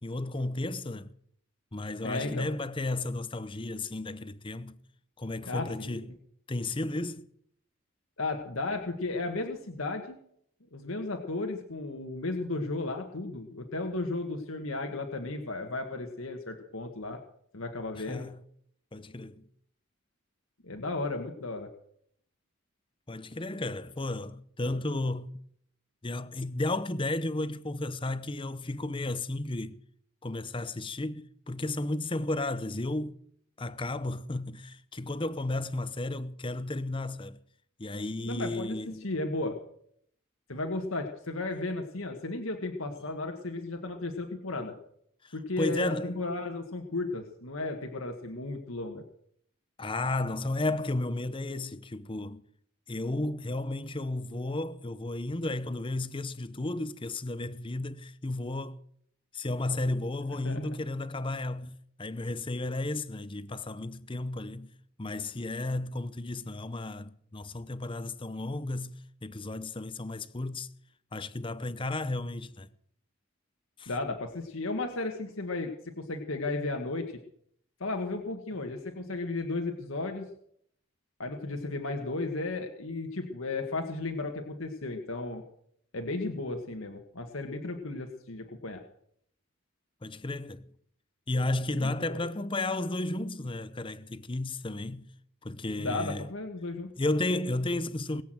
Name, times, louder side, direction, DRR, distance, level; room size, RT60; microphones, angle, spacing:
voice 1, 0.0-1.1 1.7-4.8 5.2-6.1 6.5-7.3 17.9-18.4 18.9-19.5 23.1-25.5 26.0-29.8 30.2-33.2 33.6-37.4 37.8-39.1 45.2-46.2 49.8-52.4 52.9-58.8 59.3-64.7 65.0-70.7 71.1-72.7 73.8-73.9 90.0-90.6 91.3-95.1 95.4-96.2 97.0-98.2, left 2 dB, 25° left, 0.8 m, -33 dB
voice 2, 2.0-2.5 5.5-6.0 8.2-10.2 10.7-17.2 17.5-18.3 20.6-21.7 38.2-39.6 40.5-44.8 45.3-49.0 60.4-60.7 73.9-77.2 77.8-80.3 81.2-85.4 85.9-88.8 91.8-92.2 95.8-96.9, left 2 dB, 75° left, 1.7 m, -34 dB
21.0 x 8.4 x 7.8 m
head